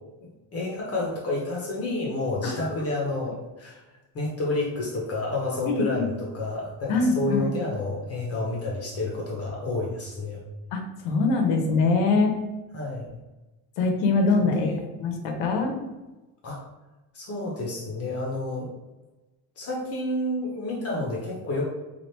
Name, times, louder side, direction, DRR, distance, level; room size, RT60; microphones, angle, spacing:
voice 1, 0.2-3.8 4.1-10.4 12.7-13.1 14.4-14.8 16.4-16.6 17.1-18.7 19.6-21.6, left 2 dB, 35° left, -2 dB, 0.7 m, -30 dB
voice 2, 5.7-6.1 6.9-7.5 10.7-12.3 13.8-14.7 15.0-15.7, left 3 dB, 85° left, 4 dB, 0.9 m, -23 dB
3.3 x 2.4 x 4.3 m, 1.1 s
cardioid pair, 165°, 43 cm